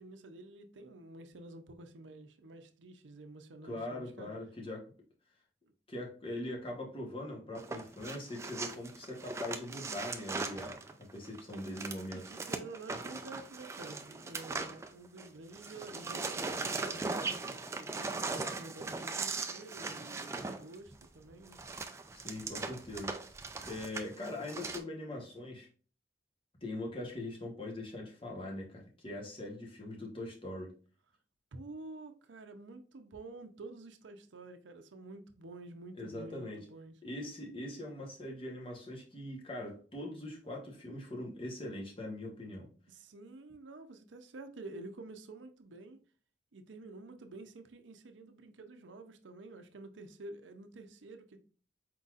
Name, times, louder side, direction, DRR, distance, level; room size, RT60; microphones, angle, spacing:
voice 1, 0.0-4.3 11.3-11.4 12.1-21.7 31.5-36.9 42.9-46.0 46.5-51.4, right 2 dB, 90° right, 0.6 m, -49 dB
voice 2, 3.6-4.9 5.9-12.2 22.2-23.2 23.6-25.7 26.6-30.7 36.0-36.6 37.0-42.7, left 1 dB, 30° left, 1.0 m, -42 dB
sound 1, 7.5-15.3 15.5-24.8, right 3 dB, 15° right, 0.3 m, -39 dB
4.5 x 4.0 x 2.4 m
head